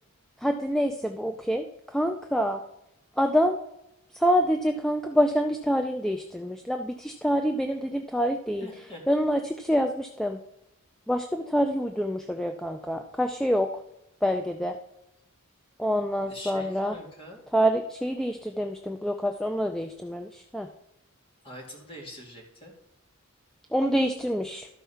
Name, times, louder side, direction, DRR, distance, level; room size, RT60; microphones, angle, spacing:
voice 1, 0.4-2.6 3.2-3.6 4.1-8.7 9.1-10.4 11.1-13.7 14.2-14.8 15.8-16.9 17.5-20.7 23.7-24.7, equal, ahead, 5 dB, 0.3 m, -26 dB
voice 2, 8.6-9.0 16.3-17.4 21.4-22.7, equal, 25° left, 0 dB, 2.1 m, -43 dB
12.5 x 4.6 x 5.6 m, 0.85 s
head